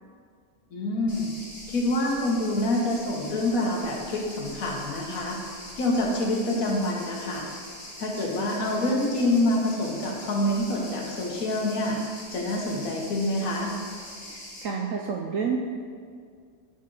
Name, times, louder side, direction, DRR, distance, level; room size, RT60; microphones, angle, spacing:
voice 1, 0.7-1.3 1.7-5.4 5.8-7.4 8.0-12.0 12.3-13.7, left 1 dB, 60° left, -1 dB, 1.3 m, -26 dB
sound 1, 1.1-14.6, left 1 dB, 15° left, 0.9 m, -43 dB
voice 2, 14.3-15.6, right 6 dB, 70° right, 1 dB, 0.8 m, -29 dB
10.5 x 4.0 x 3.8 m, 2.1 s
omnidirectional pair, 1.8 m